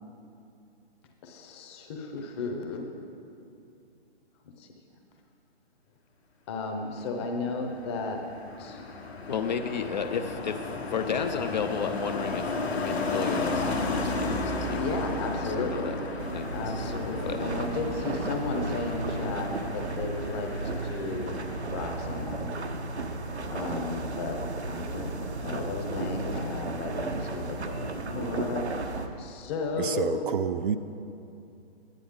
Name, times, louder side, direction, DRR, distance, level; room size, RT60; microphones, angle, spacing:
voice 1, 1.2-2.9 4.6-5.0 6.5-8.2 8.6-8.8 14.8-16.0 16.5-21.4 21.7-22.5 23.5-24.4 24.7-25.1 25.4-30.3, left 3 dB, 25° left, 3 dB, 0.9 m, -34 dB
Car passing by, 7.5-22.3 22.6-22.9, left 2 dB, 75° left, 1.6 m, -34 dB
voice 2, 9.3-16.0 16.3-16.5 16.7-17.5, left 6 dB, 45° left, 8 dB, 0.5 m, -33 dB
sound 1, 16.2-29.1, right 2 dB, 90° right, 1.0 m, -34 dB
voice 3, 29.8-30.8, right 7 dB, 55° right, 10 dB, 0.5 m, -29 dB
11.0 x 9.9 x 3.7 m, 2.6 s
hypercardioid pair, 145°, 32 cm